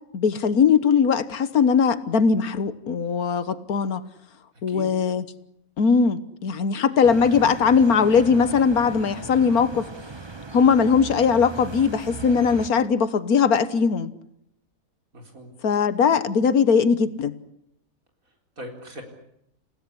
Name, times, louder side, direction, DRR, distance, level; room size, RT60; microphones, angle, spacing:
voice 1, 0.1-4.0 4.6-5.2 5.8-9.9 10.5-14.1 15.6-17.4, left 6 dB, 80° left, 14 dB, 1.7 m, -20 dB
sound 1, 7.0-12.7, right 3 dB, 20° right, 0.9 m, -38 dB
voice 2, 15.1-15.5 18.3-19.0, equal, 65° right, 3 dB, 4.6 m, -40 dB
28.5 x 17.0 x 10.0 m, 0.79 s
omnidirectional pair, 1.5 m